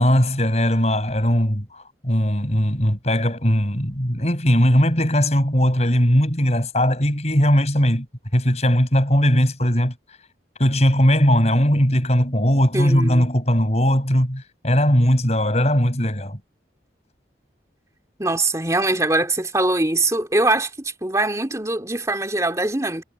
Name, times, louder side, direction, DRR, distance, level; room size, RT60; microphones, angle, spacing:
voice 1, 0.0-8.1 8.3-9.9 10.6-16.4, equal, 35° left, 6.5 m, -19 dB
voice 2, 12.7-13.3 18.2-23.0, right 2 dB, 15° right, 2.8 m, -22 dB
head